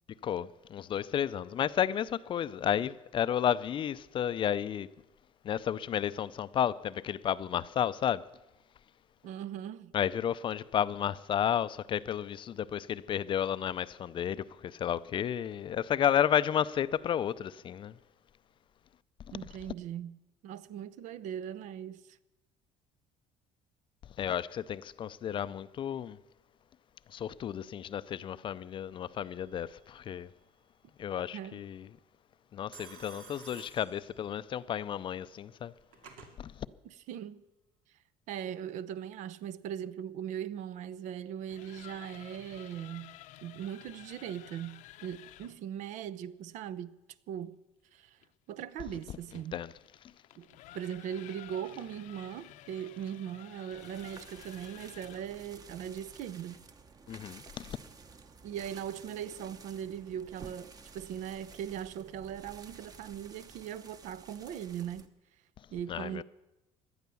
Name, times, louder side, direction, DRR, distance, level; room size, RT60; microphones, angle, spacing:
voice 1, 0.2-4.9 5.4-8.2 9.9-17.9 24.2-26.2 27.1-30.3 31.0-31.9 32.5-35.7 36.4-36.5 49.5-49.7 57.1-57.8 65.9-66.2, left 9 dB, 40° left, 0.5 m, -32 dB
voice 2, 9.2-10.0 19.3-20.2 20.4-22.0 31.3-31.6 36.8-37.4 38.3-47.0 47.3-47.6 47.9-48.2 48.5-49.6 50.4-56.6 58.4-65.1 65.7-66.2, right 9 dB, 65° right, 0.7 m, -40 dB
Telephone, 29.1-29.6 32.7-34.6 35.6-36.3, right 6 dB, 85° right, 2.6 m, -53 dB
sound 1, 41.3-45.6 48.2-55.4, left 14 dB, 70° left, 0.8 m, -53 dB
sound 2, 53.7-65.1, right 4 dB, 30° right, 1.1 m, -53 dB
17.5 x 12.0 x 7.0 m
cardioid pair, 125°, 14 cm